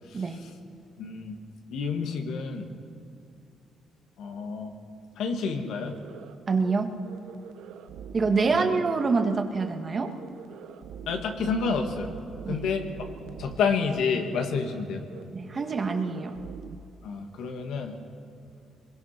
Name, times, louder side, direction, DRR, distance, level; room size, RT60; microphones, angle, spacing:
voice 1, 0.1-0.5 1.0-1.4 1.7-2.7 4.2-4.7 5.2-6.0 8.3-8.7 11.1-12.1 12.5-12.9 13.4-15.1 17.0-18.0, left 5 dB, 80° left, 4 dB, 2.1 m, -29 dB
sound 1, 5.4-5.5 5.8-6.3 6.6-6.8 7.0-8.5 8.8-9.3 9.5-9.7 10.0-13.6 13.8-14.0 14.3-14.8 15.1-15.2 15.5-16.8, right 7 dB, 85° right, 0.9 m, -44 dB
voice 2, 6.5-7.0 8.1-10.1 12.4-12.7 15.3-16.3, right 4 dB, 40° right, 5 dB, 1.9 m, -26 dB
24.0 x 22.0 x 6.0 m, 2.7 s
cardioid pair, 90°, 0 cm